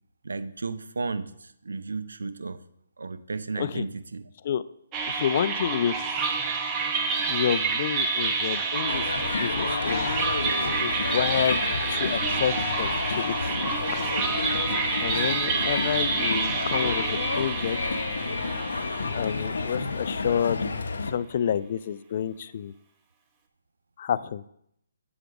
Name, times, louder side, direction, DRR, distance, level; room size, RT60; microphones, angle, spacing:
voice 1, 0.2-2.6 3.0-4.2, right 4 dB, 80° right, 13 dB, 0.6 m, -34 dB
sound 1, 4.9-20.2, right 4 dB, 20° right, 0.8 m, -29 dB
voice 2, 5.1-6.0 7.3-10.1 10.8-13.6 15.0-18.0 19.1-20.7 21.0-22.7 24.0-24.4, left 9 dB, 45° left, 16 dB, 0.3 m, -29 dB
sound 2, 8.9-21.1, left 4 dB, 75° left, 0.7 m, -30 dB
8.0 x 5.0 x 4.7 m, 0.73 s
hypercardioid pair, 155°, 0 cm